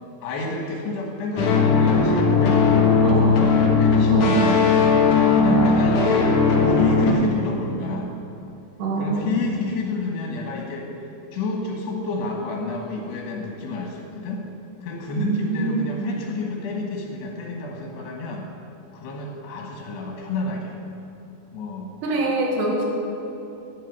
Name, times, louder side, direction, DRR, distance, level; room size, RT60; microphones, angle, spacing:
voice 1, 0.2-3.5 3.8-4.9 5.3-8.1 9.0-11.0 11.3-14.4 14.8-18.5 18.9-20.8 21.5-21.9, left 3 dB, 80° left, -1 dB, 3.6 m, -30 dB
sound 1, 1.4-7.1, left 4 dB, 60° left, 2.6 m, -18 dB
voice 2, 3.0-3.4 4.1-4.5 5.5-5.7 8.8-9.3 15.2-16.2 22.0-22.8, right 3 dB, 80° right, -1 dB, 4.2 m, -25 dB
12.5 x 8.8 x 9.4 m, 2.9 s
omnidirectional pair, 4.8 m